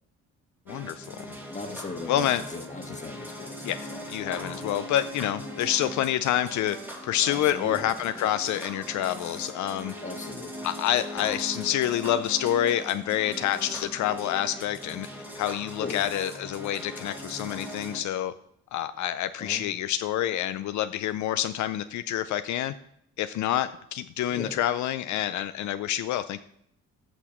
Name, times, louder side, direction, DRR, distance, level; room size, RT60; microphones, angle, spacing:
voice 1, 0.7-1.2 2.1-2.4 3.6-3.8 4.1-6.8 7.0-9.9 10.6-15.1 15.3-18.3 18.7-22.7 23.2-26.4, left 11 dB, 70° left, 11 dB, 0.5 m, -27 dB
sound 1, 0.7-18.0, equal, 5° right, 1.8 m, -40 dB
voice 2, 1.5-3.6 3.9-4.0 7.2-7.9 10.0-10.7 15.8-16.1 19.4-19.6 24.3-24.6, left 3 dB, 25° left, 4 dB, 1.5 m, -38 dB
14.0 x 6.1 x 3.0 m, 0.73 s
cardioid pair, 90°, 30 cm